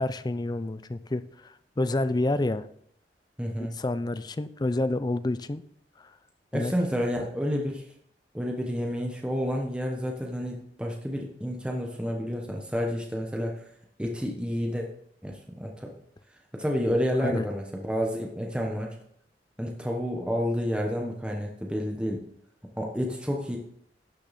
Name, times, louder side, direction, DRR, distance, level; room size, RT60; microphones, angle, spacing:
voice 1, 0.0-2.7 3.6-5.6 6.0-6.1 6.5-6.7 17.2-17.5, left 2 dB, 25° left, 13 dB, 0.4 m, -29 dB
voice 2, 3.4-3.7 6.5-7.8 8.3-13.6 14.0-14.9 15.2-15.9 16.5-19.0 19.6-22.2 22.7-23.6, equal, 5° right, 0 dB, 1.0 m, -30 dB
12.0 x 6.4 x 4.2 m, 0.68 s
head